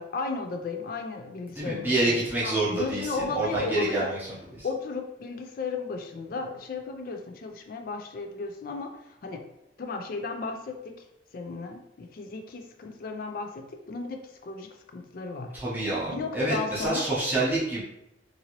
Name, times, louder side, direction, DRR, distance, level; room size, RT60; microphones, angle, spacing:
voice 1, 0.0-4.1 4.6-9.5 9.8-11.1 11.3-15.6 16.1-17.1, left 4 dB, 50° left, 5 dB, 0.3 m, -34 dB
voice 2, 1.6-4.7 15.5-17.8, right 2 dB, 10° right, -9 dB, 0.7 m, -28 dB
2.9 x 2.6 x 2.8 m, 0.83 s
head